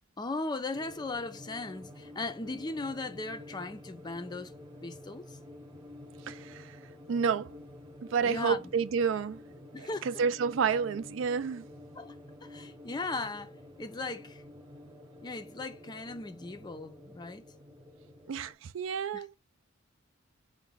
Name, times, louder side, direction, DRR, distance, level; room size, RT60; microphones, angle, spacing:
voice 1, 0.2-4.6 4.8-5.4 8.2-8.7 9.7-10.1 11.9-14.4 15.2-17.4 19.1-19.2, left 3 dB, 20° left, 0.4 m, -38 dB
sound 1, 0.7-18.5, left 1 dB, 20° right, 0.9 m, -50 dB
voice 2, 6.3-6.8 7.1-7.5 8.0-9.4 9.8-11.6 18.3-19.3, right 6 dB, 70° right, 0.4 m, -30 dB
4.7 x 2.1 x 3.8 m
head